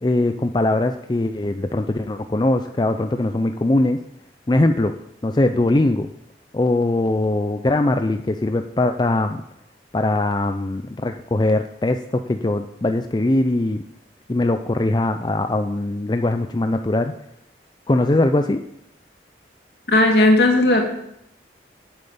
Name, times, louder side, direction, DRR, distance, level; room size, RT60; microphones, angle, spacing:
voice 1, 0.0-4.0 4.5-4.9 5.2-6.1 6.5-9.4 9.9-13.8 14.3-17.1 17.9-18.6, left 2 dB, 25° left, 7 dB, 0.4 m, -21 dB
voice 2, 19.9-20.8, left 1 dB, 65° left, 1 dB, 2.5 m, -15 dB
8.8 x 8.0 x 8.5 m, 0.79 s
head